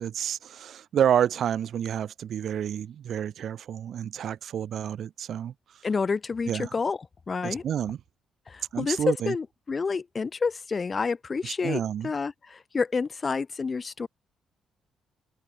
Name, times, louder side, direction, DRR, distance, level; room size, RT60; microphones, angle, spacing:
voice 1, 0.0-5.5 6.5-6.7 7.4-8.0 8.7-9.3 11.4-12.1, right 9 dB, 65° right, 2.1 m, -29 dB
voice 2, 5.8-7.0 7.3-7.6 8.5-14.1, left 4 dB, 35° left, 2.2 m, -29 dB
open air
cardioid pair, 90°, 0 cm